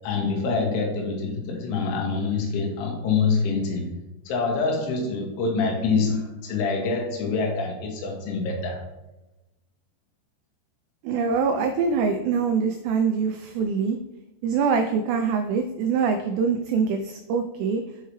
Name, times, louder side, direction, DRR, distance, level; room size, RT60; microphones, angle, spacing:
voice 1, 0.0-3.9 4.3-8.8, left 4 dB, 80° left, 1 dB, 3.5 m, -25 dB
voice 2, 11.0-14.0 14.4-17.8, right 5 dB, 90° right, 6 dB, 2.4 m, -24 dB
6.8 x 5.6 x 3.1 m, 0.98 s
omnidirectional pair, 5.4 m